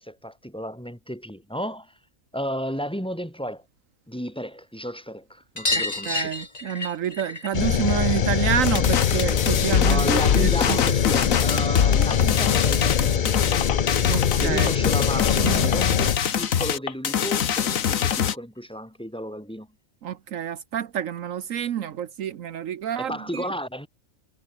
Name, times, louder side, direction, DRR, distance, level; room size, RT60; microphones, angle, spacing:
voice 1, 0.0-2.0 2.3-3.6 4.1-6.4 9.8-13.7 14.4-19.7 23.0-23.9, equal, 5° left, 5.5 m, -33 dB
sound 1, 5.6-10.7 11.0-12.1 13.5-13.6 13.8-13.9 14.2-14.3 15.6-15.7 15.9-16.0 16.4-16.5 17.7-17.8 18.6-18.7, left 2 dB, 30° left, 2.8 m, -33 dB
voice 2, 6.1-10.8 14.1-14.7 15.4-15.8 20.0-23.4, right 9 dB, 75° right, 1.2 m, -28 dB
sound 2, 7.5-16.2, left 7 dB, 45° left, 0.7 m, -23 dB
sound 3, 8.6-18.4, left 8 dB, 75° left, 1.5 m, -24 dB
omnidirectional pair, 1.4 m